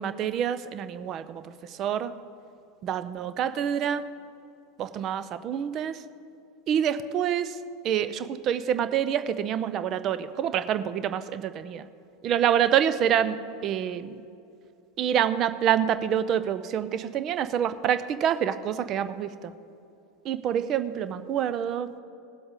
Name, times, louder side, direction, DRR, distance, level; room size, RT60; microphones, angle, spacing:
voice 1, 0.0-2.1 2.8-4.0 4.8-6.0 6.7-7.6 7.8-11.9 12.2-13.4 13.6-14.2 15.0-19.5 20.2-22.0, right 9 dB, 40° right, 12 dB, 0.5 m, -27 dB
18.5 x 7.8 x 3.8 m, 2.7 s
figure-of-eight pair, 80°, 0 cm